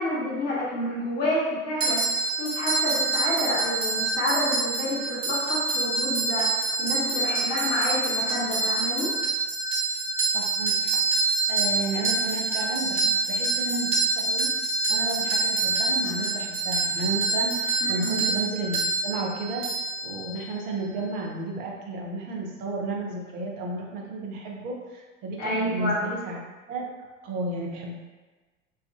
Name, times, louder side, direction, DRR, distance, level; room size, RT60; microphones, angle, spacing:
voice 1, 0.0-2.0 2.4-6.5 6.8-9.1 17.8-18.1 25.4-26.0, left 1 dB, 40° left, -6 dB, 1.0 m, -29 dB
sound 1, 1.8-20.6, right 3 dB, 65° right, 1.1 m, -26 dB
voice 2, 10.3-14.5 14.9-19.7 20.0-26.4 26.7-27.9, right 2 dB, 25° right, 0 dB, 0.4 m, -32 dB
3.1 x 2.3 x 2.3 m, 1.2 s
figure-of-eight pair, 80°, 40 cm